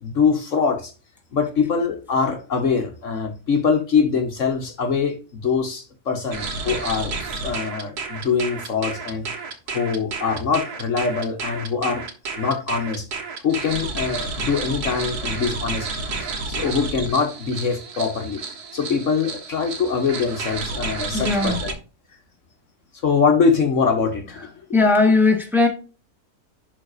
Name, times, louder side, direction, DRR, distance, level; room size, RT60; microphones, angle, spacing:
voice 1, 0.0-0.9 1.3-7.2 7.4-9.2 9.7-12.0 12.4-13.1 13.4-15.9 16.2-18.4 18.7-21.7 23.0-24.6, left 5 dB, 55° left, 1.3 m, -23 dB
sound 1, 6.3-21.7, right 4 dB, 85° right, 1.8 m, -31 dB
voice 2, 21.1-21.6 24.7-25.7, left 3 dB, ahead, 1.3 m, -18 dB
11.0 x 4.0 x 2.5 m
omnidirectional pair, 1.6 m